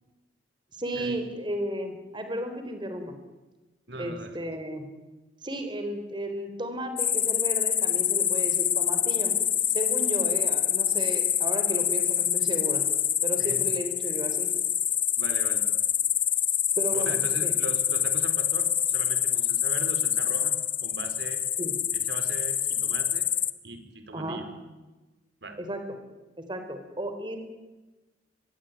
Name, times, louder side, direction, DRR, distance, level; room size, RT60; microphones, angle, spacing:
voice 1, 0.8-3.2 4.0-4.9 5.4-9.3 9.7-12.8 13.2-14.5 16.8-17.5 21.6-21.7 24.1-24.4 25.6-25.8 26.4-27.4, equal, 25° right, 7 dB, 4.0 m, -34 dB
voice 2, 3.9-4.4 13.4-13.6 15.2-15.6 16.9-20.5 20.8-21.4 21.9-23.3 23.6-24.5 25.4-25.6, right 2 dB, 60° right, 8 dB, 4.3 m, -39 dB
sound 1, 7.0-23.5, left 9 dB, 30° left, 1.1 m, -26 dB
25.0 x 22.0 x 9.2 m, 1.1 s
head